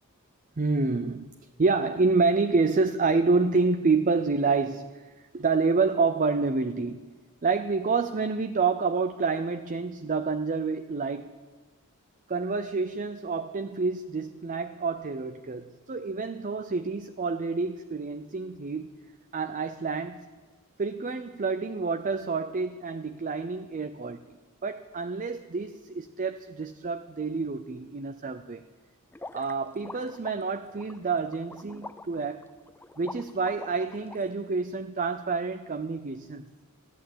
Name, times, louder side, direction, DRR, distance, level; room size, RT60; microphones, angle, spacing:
voice 1, 0.6-1.3 1.6-7.1 7.4-11.4 12.3-18.9 19.3-20.3 20.8-24.2 24.6-28.6 29.3-32.5 33.0-36.5, right 4 dB, 40° right, 8 dB, 0.6 m, -28 dB
sound 1, 29.1-34.2, left 2 dB, 10° left, 0.4 m, -44 dB
15.0 x 11.0 x 8.7 m, 1.4 s
head